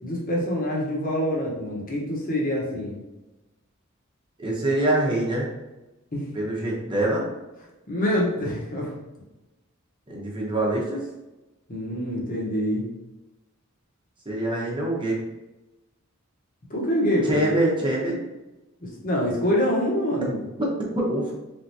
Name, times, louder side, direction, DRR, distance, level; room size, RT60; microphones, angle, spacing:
voice 1, 0.0-3.0 6.1-6.3 7.9-8.9 11.7-12.9 16.7-17.4 18.8-20.4, equal, 45° left, -3 dB, 1.2 m, -25 dB
voice 2, 4.4-5.5 6.3-7.3 8.4-8.5 10.1-11.0 14.2-15.2 17.2-18.2 20.3-21.3, right 1 dB, 25° right, -3 dB, 1.0 m, -25 dB
3.9 x 3.6 x 2.8 m, 1.0 s
head